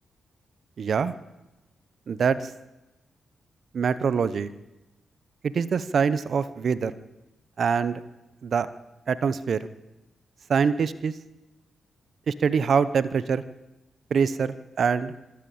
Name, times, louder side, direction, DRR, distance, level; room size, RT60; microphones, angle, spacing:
voice 1, 0.8-1.1 2.1-2.5 3.7-4.5 5.4-6.9 7.6-8.0 8.4-8.7 9.1-9.6 10.5-11.1 12.3-13.4 14.1-15.1, right 6 dB, 65° right, 15 dB, 1.0 m, -24 dB
25.5 x 13.0 x 8.8 m, 1.0 s
supercardioid pair, 50°, 0 cm